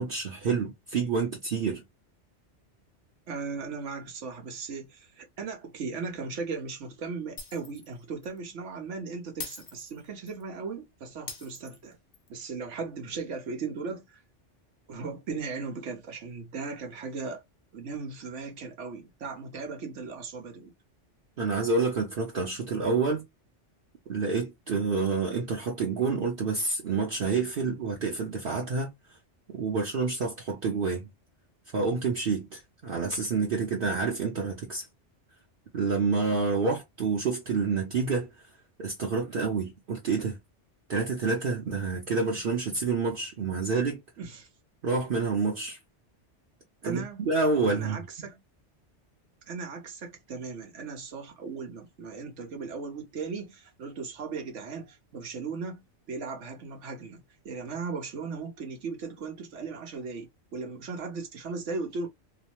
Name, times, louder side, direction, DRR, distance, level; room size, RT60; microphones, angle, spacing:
voice 1, 0.0-1.8 21.4-23.2 24.1-28.9 29.5-31.1 31.7-34.9 35.7-38.3 38.8-40.4 40.9-44.0 44.8-45.8 46.8-48.0, right 4 dB, 55° right, 0.8 m, -28 dB
voice 2, 3.3-12.0 12.3-14.2 14.9-17.4 17.7-20.7 44.2-44.5 46.8-47.2 47.7-48.4 49.5-55.8 56.1-62.1, right 4 dB, 90° right, 1.2 m, -37 dB
Shatter, 7.4-7.9 8.2-8.4 9.4-10.4 11.3-12.3, left 4 dB, 45° left, 0.8 m, -42 dB
3.0 x 2.0 x 2.8 m
omnidirectional pair, 1.2 m